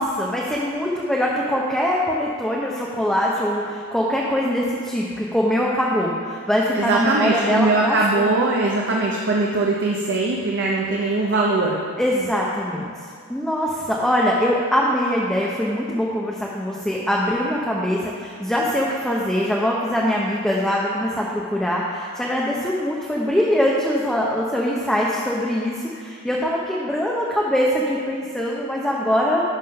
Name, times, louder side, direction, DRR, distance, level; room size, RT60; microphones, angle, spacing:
voice 1, 0.0-8.3 12.0-12.9 13.3-29.4, equal, 5° left, -4 dB, 0.6 m, -22 dB
voice 2, 6.7-11.8, right 3 dB, 55° right, -2 dB, 0.7 m, -21 dB
11.0 x 3.7 x 5.5 m, 2.2 s
head